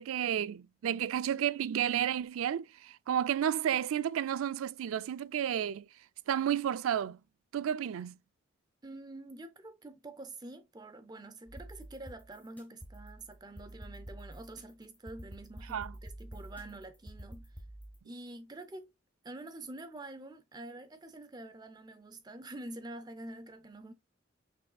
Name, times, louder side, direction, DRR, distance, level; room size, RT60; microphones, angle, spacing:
voice 1, 0.0-5.8 6.3-7.2 7.5-8.1 15.7-15.9, right 9 dB, 90° right, 0.3 m, -31 dB
voice 2, 8.8-17.5 18.0-18.9 19.2-23.9, right 2 dB, 20° right, 0.5 m, -47 dB
sound 1, 11.5-18.0, right 1 dB, 10° left, 1.2 m, -48 dB
6.1 x 3.5 x 2.2 m
head